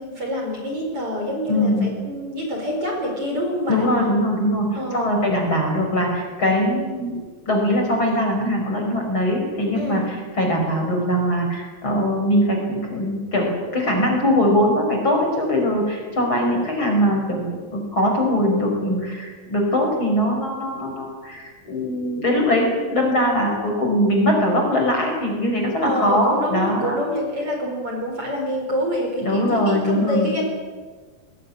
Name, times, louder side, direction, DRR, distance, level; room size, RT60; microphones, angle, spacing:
voice 1, 0.0-3.9 4.7-5.2 9.7-10.0 25.8-30.4, equal, 35° right, 1 dB, 5.4 m, -26 dB
voice 2, 1.5-1.9 3.7-4.7 4.9-7.2 7.5-17.5 17.7-27.0 29.2-30.3, equal, 30° left, 1 dB, 5.8 m, -21 dB
21.0 x 20.0 x 9.8 m, 1.4 s
omnidirectional pair, 4.7 m